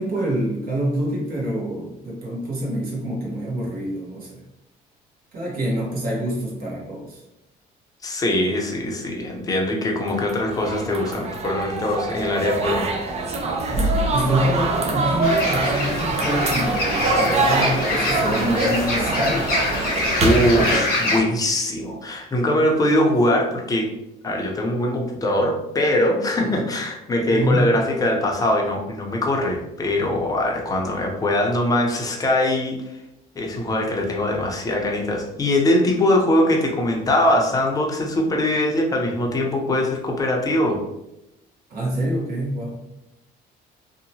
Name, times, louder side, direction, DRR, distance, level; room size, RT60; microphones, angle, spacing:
voice 1, 0.0-4.4 5.3-7.2 14.1-19.4 20.2-20.7 26.4-26.7 27.3-27.6 41.7-42.8, right 1 dB, 60° right, -3 dB, 0.9 m, -26 dB
voice 2, 8.0-12.9 20.2-23.9 24.2-32.8 33.4-40.8, left 1 dB, 20° left, 0 dB, 0.6 m, -22 dB
sound 1, 10.0-20.8, right 2 dB, 40° right, 0.5 m, -24 dB
sound 2, 15.2-21.2, left 2 dB, 60° left, 0.8 m, -25 dB
2.8 x 2.1 x 2.7 m, 0.88 s
cardioid pair, 110°, 17 cm